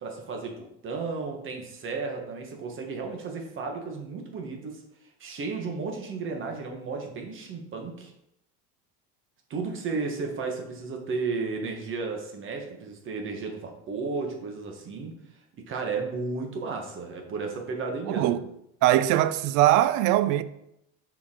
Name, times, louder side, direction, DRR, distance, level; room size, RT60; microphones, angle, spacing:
voice 1, 0.0-4.8 5.2-8.1 9.5-15.1 15.6-18.4, right 4 dB, 40° right, 1.3 m, -33 dB
voice 2, 18.1-18.4 18.8-20.4, right 13 dB, 70° right, 0.5 m, -21 dB
6.8 x 4.7 x 3.7 m
cardioid pair, 150°, 32 cm